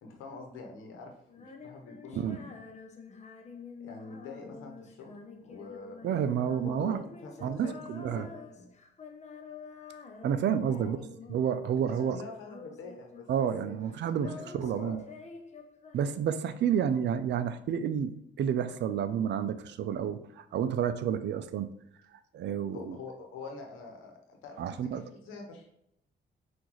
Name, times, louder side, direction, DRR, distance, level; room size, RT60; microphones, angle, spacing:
voice 1, 0.0-2.5 3.8-5.2 5.4-6.0 6.6-8.7 10.7-10.9 11.8-15.0 22.7-25.7, left 4 dB, 90° left, 2 dB, 1.0 m, -46 dB
Female singing, 1.3-11.6 11.9-13.6 13.8-16.5, left 4 dB, 35° left, 0.6 m, -48 dB
voice 2, 6.0-7.0 7.4-8.3 10.2-11.0 11.3-12.2 13.3-15.0 15.9-21.7 22.3-23.0 24.6-25.0, right 8 dB, 65° right, 11 dB, 0.4 m, -30 dB
6.0 x 2.6 x 3.1 m, 0.76 s
cardioid pair, 90°, 20 cm